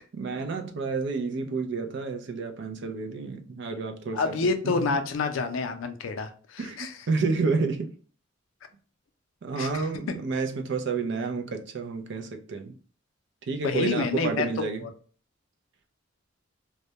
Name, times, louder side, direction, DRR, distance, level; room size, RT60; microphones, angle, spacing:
voice 1, 0.1-5.0 6.6-7.9 9.4-12.7 13.5-14.9, right 4 dB, 60° right, 0.4 m, -30 dB
voice 2, 4.1-6.9 9.6-9.8 10.1-10.2 13.6-14.5 14.8-14.9, left 4 dB, 85° left, 0.4 m, -28 dB
2.2 x 2.1 x 2.7 m
head